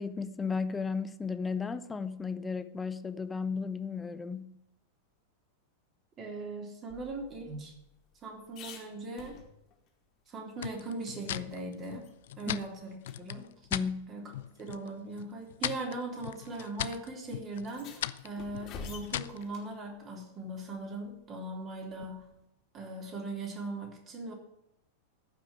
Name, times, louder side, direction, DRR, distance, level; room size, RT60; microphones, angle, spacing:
voice 1, 0.0-4.5 12.5-12.6 13.7-14.1, left 5 dB, 15° left, 0.9 m, -34 dB
voice 2, 6.2-7.7 8.2-9.4 10.3-12.1 12.4-13.5 14.1-14.3 14.6-22.3 22.7-24.3, right 2 dB, 30° right, 3.5 m, -39 dB
sound 1, 6.9-9.9 10.3-10.4 10.7-12.1 12.5-12.6 13.0-13.2 14.2-14.3 15.2-15.5 16.5-16.6 16.9-17.0 17.5-19.7 22.0-22.5, left 5 dB, 35° left, 2.8 m, -49 dB
sound 2, 10.6-13.9 14.3-14.9 15.2-19.4, left 12 dB, 55° left, 0.5 m, -39 dB
14.5 x 6.0 x 8.9 m
figure-of-eight pair, 90°, 0 cm